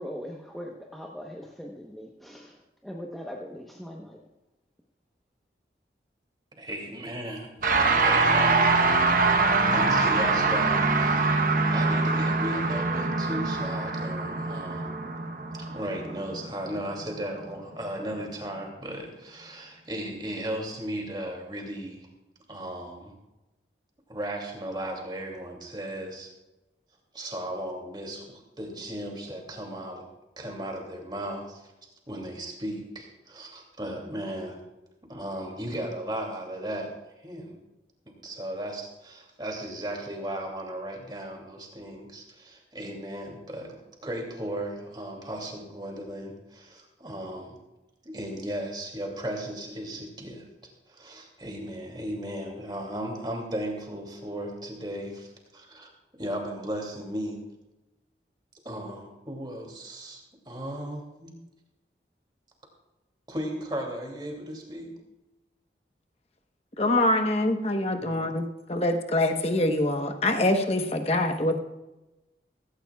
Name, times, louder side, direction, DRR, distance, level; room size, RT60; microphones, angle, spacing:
voice 1, 0.0-4.2, equal, ahead, -1 dB, 0.9 m, -40 dB
voice 2, 6.6-7.5 7.9-8.7 9.7-11.4 11.7-14.9 15.5-22.1 22.5-23.1 24.1-26.3 27.1-30.0 30.4-31.6 32.1-34.6 35.1-37.6 38.2-47.6 48.0-57.4 58.6-61.3 63.3-64.9 68.0-68.3, right 1 dB, 25° right, 1 dB, 2.5 m, -36 dB
sound 1, 7.6-17.1, right 3 dB, 50° right, 1.0 m, -24 dB
voice 3, 66.8-71.6, left 1 dB, 35° left, 5 dB, 1.1 m, -25 dB
16.5 x 16.5 x 2.3 m, 1.0 s
head